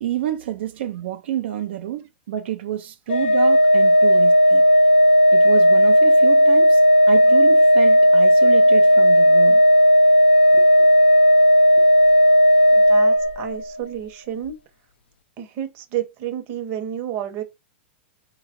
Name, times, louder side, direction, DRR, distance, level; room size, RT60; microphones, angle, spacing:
voice 1, 0.0-4.6 5.3-6.8 7.1-9.6 10.5-10.6, right 11 dB, 75° right, 0.4 m, -29 dB
Organ, 3.1-13.8, equal, 80° left, 0.4 m, -14 dB
voice 2, 12.7-14.6 15.4-17.4, right 10 dB, 40° right, 0.7 m, -30 dB
3.6 x 2.2 x 2.9 m
supercardioid pair, 145°, 6 cm